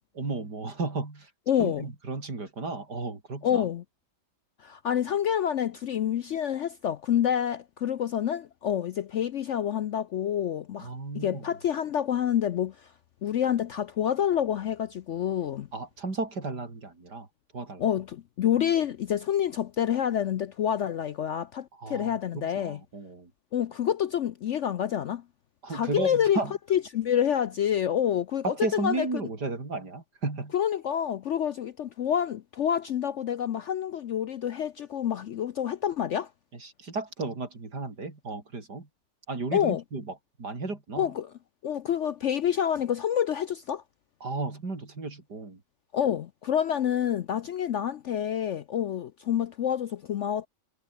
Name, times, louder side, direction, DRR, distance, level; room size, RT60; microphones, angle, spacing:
voice 1, 0.1-1.3 1.6-3.6 10.8-11.5 15.7-17.3 17.5-17.9 21.7-23.3 25.6-26.5 28.4-30.5 36.5-38.9 39.3-41.1 44.2-45.6, right 3 dB, 70° right, 4.9 m, -34 dB
voice 2, 1.5-1.9 3.4-3.8 4.6-10.9 11.1-12.9 13.2-15.7 17.8-22.8 23.5-25.2 25.7-26.4 26.7-29.1 30.5-36.3 39.5-39.8 41.0-41.3 41.6-43.8 45.9-50.5, left 9 dB, 65° left, 0.7 m, -28 dB
omnidirectional pair, 1.9 m